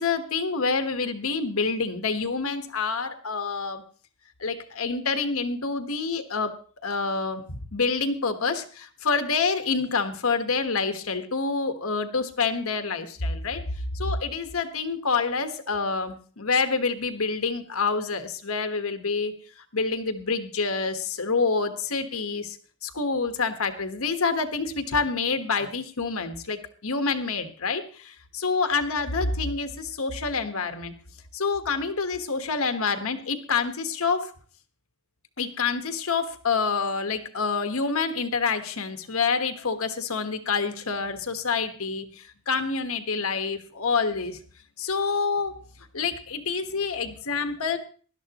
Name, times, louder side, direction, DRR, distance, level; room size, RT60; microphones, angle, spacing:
voice 1, 0.0-3.8 4.4-6.6 6.8-13.6 13.9-19.3 19.7-22.6 22.8-30.9 31.3-34.3 35.4-44.4 44.8-45.6 45.9-47.8, left 4 dB, 80° left, 8 dB, 1.4 m, -27 dB
19.0 x 12.0 x 3.0 m, 0.41 s
head